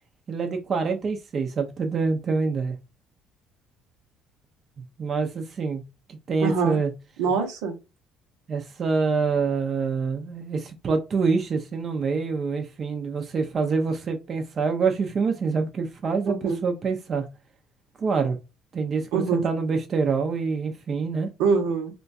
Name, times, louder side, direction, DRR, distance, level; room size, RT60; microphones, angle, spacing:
voice 1, 0.3-2.8 5.0-5.8 6.1-6.9 8.5-17.2 18.0-18.4 18.7-21.3, right 4 dB, 45° right, 0.6 m, -26 dB
voice 2, 6.4-6.8 7.2-7.8 16.3-16.6 19.1-19.5 21.4-21.9, right 5 dB, 80° right, 0.8 m, -24 dB
2.9 x 2.3 x 2.7 m
supercardioid pair, 70°, 0 cm